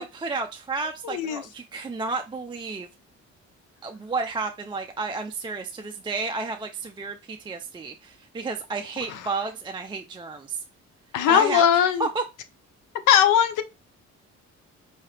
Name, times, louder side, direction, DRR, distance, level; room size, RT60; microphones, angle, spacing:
voice 1, 0.0-2.9 3.8-10.6 11.3-11.6 12.0-12.2, right 3 dB, 15° right, 0.4 m, -31 dB
voice 2, 1.0-1.4 9.1-9.2 11.1-12.1 13.1-13.6, left 9 dB, 85° left, 0.6 m, -19 dB
4.8 x 2.8 x 3.2 m
cardioid pair, 90°, 30 cm